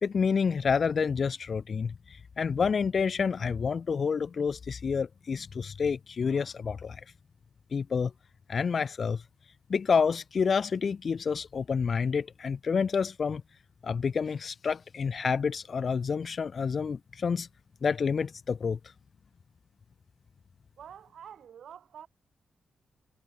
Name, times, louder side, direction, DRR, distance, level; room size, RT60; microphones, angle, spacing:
voice 1, 0.0-7.0 7.7-8.1 8.5-9.2 9.7-13.4 13.8-17.5 17.8-18.8, left 6 dB, 50° left, 3.6 m, -28 dB
voice 2, 20.8-22.1, right 8 dB, 80° right, 7.2 m, -47 dB
cardioid pair, 110°, 0 cm